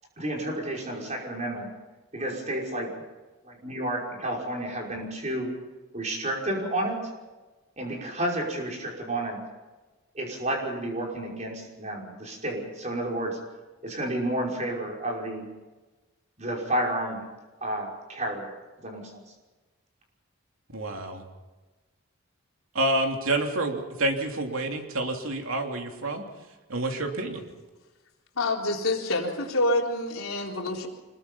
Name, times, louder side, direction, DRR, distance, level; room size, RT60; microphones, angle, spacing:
voice 1, 0.2-1.7 2.1-3.0 3.4-5.5 5.9-7.1 7.8-9.4 10.1-13.4 13.8-15.4 16.4-17.2 17.6-19.2, right 1 dB, 35° right, -1 dB, 5.6 m, -31 dB
voice 2, 20.7-21.2 22.7-26.2 26.7-27.5, right 2 dB, 75° right, 3 dB, 3.0 m, -28 dB
voice 3, 28.4-30.9, left 2 dB, 75° left, 0 dB, 4.0 m, -27 dB
25.5 x 21.5 x 5.6 m, 1.2 s
head